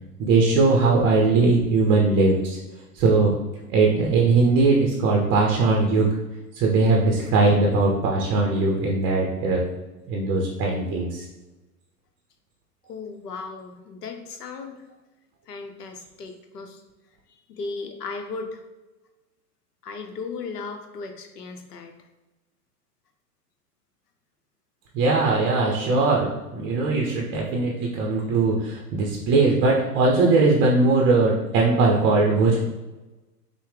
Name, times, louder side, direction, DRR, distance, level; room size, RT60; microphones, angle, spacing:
voice 1, 0.2-2.6 2.9-3.4 3.7-6.2 6.5-9.6 10.1-11.2 24.9-32.7, right 3 dB, 25° right, -1 dB, 0.5 m, -20 dB
voice 2, 12.9-14.9 15.5-16.8 17.3-18.6 19.8-21.9, left 4 dB, 80° left, 5 dB, 0.8 m, -36 dB
5.4 x 2.1 x 3.3 m, 1.1 s
figure-of-eight pair, 95°, 47 cm